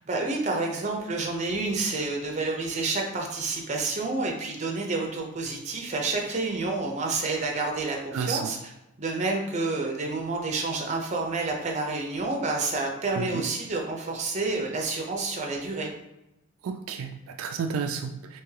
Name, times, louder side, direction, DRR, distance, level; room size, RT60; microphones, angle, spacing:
voice 1, 0.1-8.7 9.0-15.9, right 3 dB, 35° right, 1 dB, 0.5 m, -29 dB
voice 2, 8.1-8.5 13.2-13.4 16.6-18.4, right 6 dB, 80° right, 6 dB, 0.3 m, -31 dB
3.4 x 2.9 x 3.2 m, 0.93 s
head